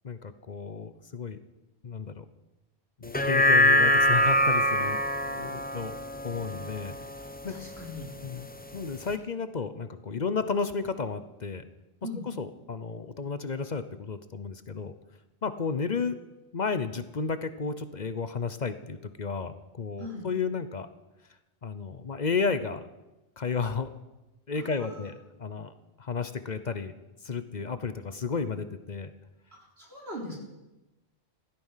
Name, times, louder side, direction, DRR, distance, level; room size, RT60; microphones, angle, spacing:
voice 1, 0.0-1.4 1.8-2.2 3.0-5.0 5.3-7.0 7.4-7.5 8.2-8.5 8.7-11.7 12.4-14.9 15.4-16.2 16.5-20.9 21.6-22.8 23.4-23.9 24.5-25.7 26.0-26.9 27.2-29.1, left 5 dB, 45° left, 11 dB, 0.9 m, -32 dB
sound 1, 3.0-7.6 8.0-8.1, equal, 10° left, 0.6 m, -24 dB
voice 2, 7.5-8.1 12.0-12.2 20.0-20.2 24.6-25.1 29.6-30.4, left 1 dB, 70° right, -2 dB, 4.1 m, -40 dB
16.0 x 13.0 x 5.7 m, 1.0 s
omnidirectional pair, 1.1 m